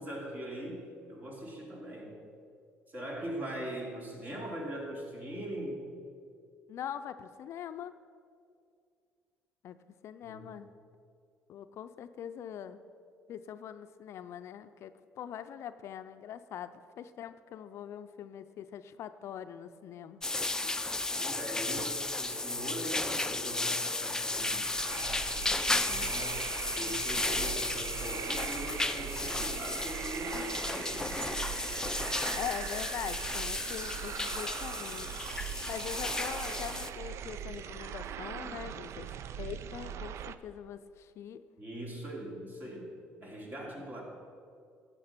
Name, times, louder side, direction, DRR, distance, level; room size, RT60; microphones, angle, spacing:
voice 1, 0.0-2.2 2.9-5.8 10.2-10.6 21.1-26.4 26.8-31.4 41.6-42.9 43.2-44.0, right 1 dB, 35° right, -1 dB, 2.9 m, -41 dB
voice 2, 6.7-8.0 9.6-9.8 10.0-10.7 11.5-12.8 13.3-20.2 32.4-35.1 35.7-39.1 39.4-41.4, left 9 dB, 65° left, 11 dB, 0.4 m, -42 dB
sound 1, 20.2-36.9, left 2 dB, 10° left, 0.5 m, -34 dB
sound 2, 23.9-40.4, right 9 dB, 65° right, 0.4 m, -41 dB
11.5 x 7.6 x 5.9 m, 2.3 s
supercardioid pair, 70°, 5 cm